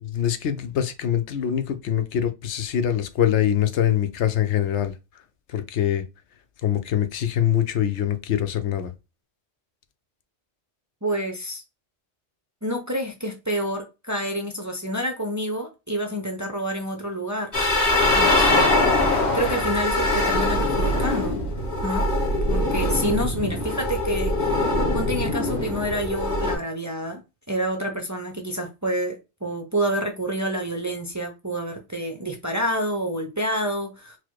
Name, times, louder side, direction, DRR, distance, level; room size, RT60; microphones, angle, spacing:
voice 1, 0.0-4.9 5.5-6.0 6.6-8.9, left 10 dB, 85° left, 1.0 m, -24 dB
voice 2, 11.0-11.6 12.6-17.5 18.1-21.4 21.8-22.1 22.5-27.2 27.5-34.2, equal, 20° right, 0.5 m, -28 dB
sound 1, 17.5-26.6, left 2 dB, 40° left, 1.7 m, -22 dB
4.3 x 2.1 x 4.5 m
omnidirectional pair, 1.1 m